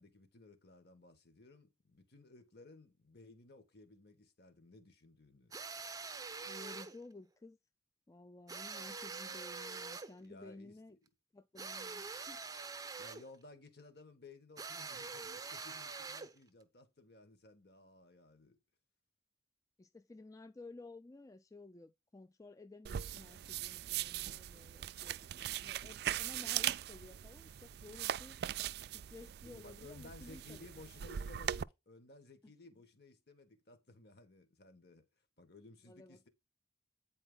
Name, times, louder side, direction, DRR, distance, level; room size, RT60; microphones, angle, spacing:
voice 1, 0.0-5.5 10.2-10.7 13.0-18.6 29.4-35.0 35.4-36.3, left 2 dB, 60° left, 1.6 m, -58 dB
sound 1, 5.5-7.0 8.5-10.2 11.6-13.3 14.6-16.4, right 4 dB, 20° right, 0.7 m, -45 dB
voice 2, 6.5-7.6 8.1-11.0 11.3-12.5 19.8-28.4 28.9-30.7 35.8-36.3, left 2 dB, 20° left, 0.3 m, -54 dB
sound 2, 22.9-31.6, right 11 dB, 60° right, 0.3 m, -40 dB
9.0 x 4.4 x 3.9 m
head